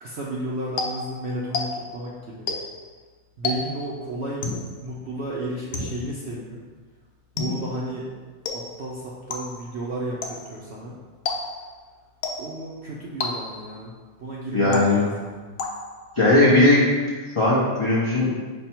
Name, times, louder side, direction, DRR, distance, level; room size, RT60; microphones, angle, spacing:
voice 1, 0.0-2.5 3.4-4.5 4.8-6.6 7.3-8.1 8.5-11.0 12.4-13.9 14.2-15.3, right 1 dB, 60° right, -5 dB, 0.7 m, -32 dB
sound 1, 0.8-2.0 2.5-2.9 3.4-3.9 4.4-4.8 5.7-6.2 7.4-7.8 8.5-8.9 9.3-9.7 10.2-10.6 11.3-11.8 12.2-12.7 13.2-13.8 14.7-15.2 15.6-16.1, left 3 dB, 70° left, 0.9 m, -31 dB
voice 2, 14.5-15.1 16.2-16.9 17.4-18.3, left 2 dB, 40° left, -7 dB, 0.4 m, -18 dB
5.4 x 2.2 x 4.3 m, 1.4 s
omnidirectional pair, 1.6 m